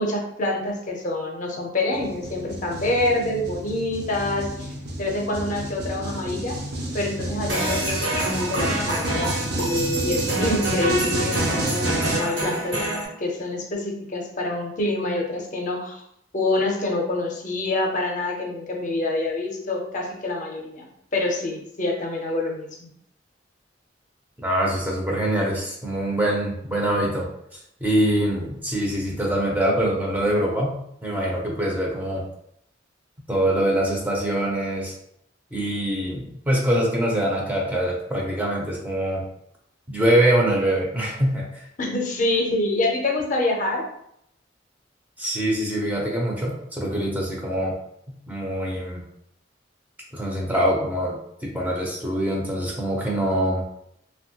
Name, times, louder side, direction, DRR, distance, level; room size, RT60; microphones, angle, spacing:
voice 1, 0.0-4.7 5.0-6.6 6.9-12.8 13.2-16.0 16.3-20.8 21.1-22.9 41.8-43.8, left 2 dB, 45° left, 0 dB, 0.5 m, -26 dB
sound 1, 1.9-12.2, right 1 dB, 60° right, 0.5 m, -30 dB
sound 2, 7.5-13.1, right 2 dB, 75° right, 1.1 m, -26 dB
voice 2, 24.4-27.3 27.8-30.8 31.0-32.3 33.3-34.9 35.5-39.3 39.9-41.6 45.2-47.7 48.3-49.0 50.1-53.6, right 1 dB, 10° right, -3 dB, 0.5 m, -24 dB
2.9 x 2.2 x 2.8 m, 0.74 s
head